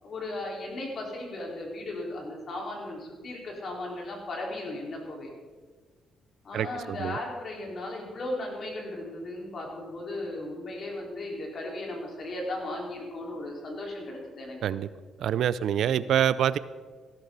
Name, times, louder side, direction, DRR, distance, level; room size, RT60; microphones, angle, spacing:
voice 1, 0.0-5.3 6.4-14.6, left 1 dB, 50° left, -1 dB, 4.5 m, -36 dB
voice 2, 6.5-7.2 14.6-14.9 15.2-16.6, right 10 dB, 70° right, 17 dB, 0.5 m, -26 dB
15.5 x 13.5 x 4.1 m, 1.5 s
cardioid pair, 90°, 0 cm